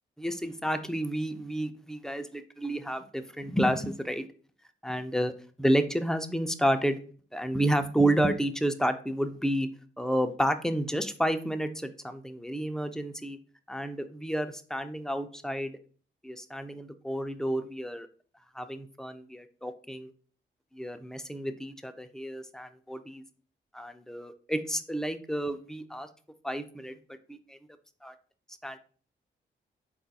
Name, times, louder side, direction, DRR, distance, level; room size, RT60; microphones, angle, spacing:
voice 1, 0.2-4.3 4.8-5.3 5.6-7.0 7.3-9.7 10.0-13.4 13.7-15.7 16.2-18.1 18.5-20.1 20.7-23.2 23.7-26.1 26.4-26.9 27.3-27.6 28.0-28.1 28.6-28.8, right 1 dB, ahead, 8 dB, 0.5 m, -30 dB
3.8 x 2.4 x 4.0 m, 0.42 s
supercardioid pair, 45°, 21 cm